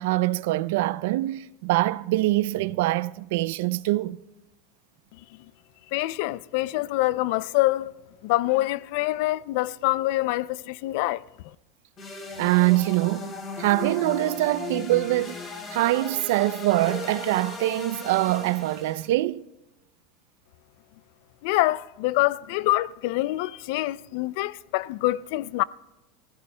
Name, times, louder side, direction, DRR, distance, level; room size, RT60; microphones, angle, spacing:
voice 1, 0.0-4.2 12.4-15.4 15.7-19.4, right 17 dB, 75° right, 0.4 m, -24 dB
voice 2, 5.9-7.9 8.2-11.2 21.4-25.6, left 18 dB, 65° left, 0.4 m, -25 dB
sound 1, 12.0-19.1, left 3 dB, 30° left, 2.7 m, -37 dB
27.0 x 15.0 x 2.2 m
supercardioid pair, 145°, 0 cm